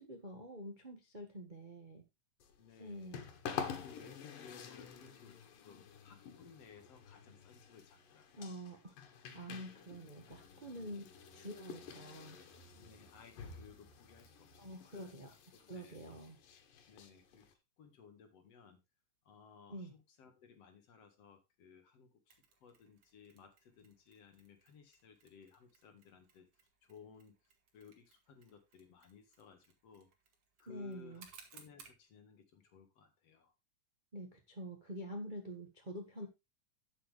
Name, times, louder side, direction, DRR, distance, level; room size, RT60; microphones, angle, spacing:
voice 1, 0.0-2.0 2.8-3.2 8.4-12.4 14.6-15.3 15.7-16.4 19.7-19.9 30.7-31.2 34.1-36.3, equal, 70° right, 3 dB, 0.4 m, -47 dB
sound 1, 2.4-17.5, left 7 dB, 85° left, 3.2 m, -49 dB
voice 2, 2.6-3.2 3.8-8.6 10.8-11.0 12.8-15.4 15.6-16.2 16.9-18.8 19.2-26.5 26.8-30.1 30.6-31.2 31.5-33.5, left 6 dB, 55° left, 6 dB, 2.4 m, -60 dB
Mechanisms, 22.3-32.0, right 6 dB, 50° right, 2.7 m, -64 dB
11.0 x 7.5 x 3.4 m, 0.24 s
omnidirectional pair, 3.8 m